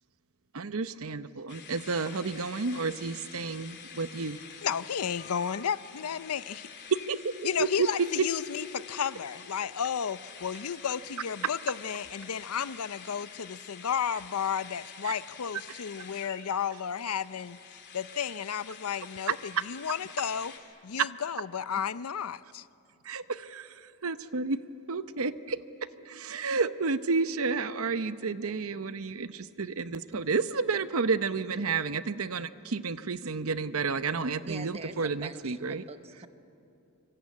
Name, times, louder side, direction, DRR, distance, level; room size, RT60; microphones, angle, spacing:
voice 1, 0.5-4.4 7.1-7.2 7.6-7.9 15.0-15.1 23.0-23.7 24.0-24.6 24.9-25.6 26.0-35.8, right 4 dB, 70° right, 12 dB, 0.8 m, -31 dB
sound 1, 1.5-20.6, left 6 dB, 50° left, 3.0 m, -48 dB
voice 2, 4.6-6.7 7.4-20.5 20.8-22.6, left 7 dB, 85° left, 16 dB, 0.6 m, -33 dB
voice 3, 34.5-36.3, right 3 dB, 30° right, 9 dB, 1.1 m, -44 dB
26.0 x 25.0 x 8.5 m, 2.8 s
head